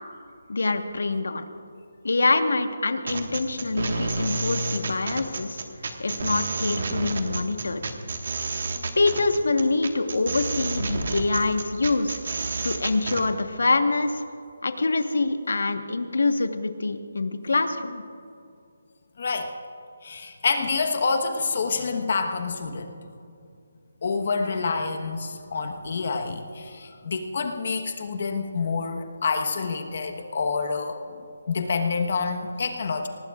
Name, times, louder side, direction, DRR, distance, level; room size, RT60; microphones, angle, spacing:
voice 1, 0.5-1.4 2.0-5.6 6.0-7.8 9.0-12.2 12.6-14.2 14.6-18.0, left 3 dB, 90° left, 7 dB, 1.3 m, -25 dB
sound 1, 3.1-13.2, right 3 dB, 50° right, 1.6 m, -30 dB
voice 2, 19.2-19.5 20.0-23.0 24.0-31.0 31.5-33.1, left 4 dB, 45° left, 5 dB, 1.2 m, -27 dB
23.5 x 19.0 x 2.5 m, 2.5 s
hypercardioid pair, 175°, 0 cm